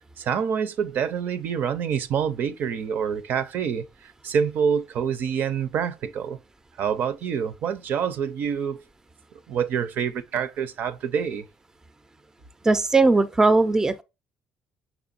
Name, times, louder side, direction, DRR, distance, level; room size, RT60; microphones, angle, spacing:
voice 1, 0.2-6.4 6.8-8.8 9.5-11.5, right 7 dB, 65° right, 0.5 m, -26 dB
voice 2, 12.6-14.0, right 3 dB, 15° right, 0.4 m, -19 dB
6.0 x 3.5 x 2.5 m
cardioid pair, 95°, 4 cm